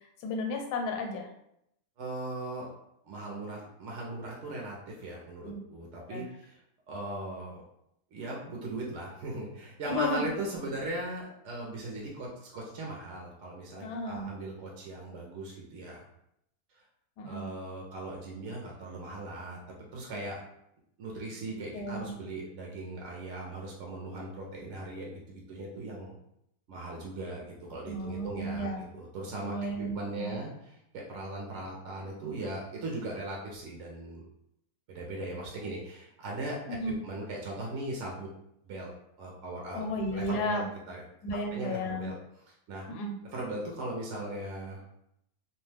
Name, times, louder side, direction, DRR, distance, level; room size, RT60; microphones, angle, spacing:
voice 1, 0.2-1.3 5.4-5.6 6.1-6.2 9.8-10.3 13.8-14.3 17.2-17.4 21.5-22.1 27.9-28.8 29.4-30.4 36.7-37.0 39.7-40.6 41.2-42.1 42.9-43.1, left 1 dB, 80° left, 3 dB, 1.1 m, -33 dB
voice 2, 2.0-2.7 3.1-6.6 6.9-7.6 8.1-16.0 17.2-19.6 19.9-20.4 21.0-26.1 26.7-34.2 34.9-36.6 36.8-38.3 38.6-38.9 39.2-39.9 40.1-41.0 41.5-42.1 42.7-42.9 43.3-44.8, right 2 dB, 65° right, -2 dB, 0.8 m, -39 dB
2.6 x 2.2 x 3.2 m, 0.77 s
omnidirectional pair, 1.7 m